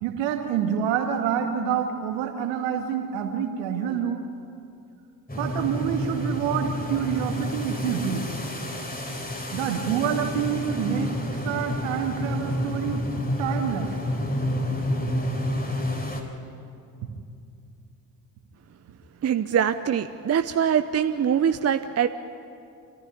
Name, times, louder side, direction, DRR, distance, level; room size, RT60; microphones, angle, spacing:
voice 1, 0.0-4.2 5.3-8.2 9.5-13.0 13.4-14.0, right 8 dB, 65° right, 4 dB, 2.3 m, -27 dB
sound 1, 5.3-16.2, left 1 dB, 20° left, 3.8 m, -29 dB
voice 2, 19.2-22.1, right 8 dB, 30° right, 10 dB, 0.8 m, -23 dB
27.0 x 14.5 x 9.9 m, 2.6 s
figure-of-eight pair, 45°, 49 cm